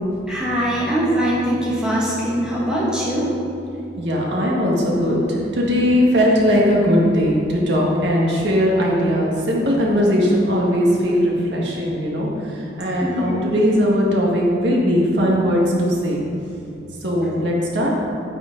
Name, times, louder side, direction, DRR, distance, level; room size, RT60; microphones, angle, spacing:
voice 1, 0.2-3.3 13.0-13.4, equal, 5° right, -8 dB, 2.1 m, -22 dB
voice 2, 4.0-16.2 17.0-17.9, equal, 65° right, -3 dB, 1.9 m, -19 dB
10.0 x 10.0 x 4.0 m, 2.6 s
head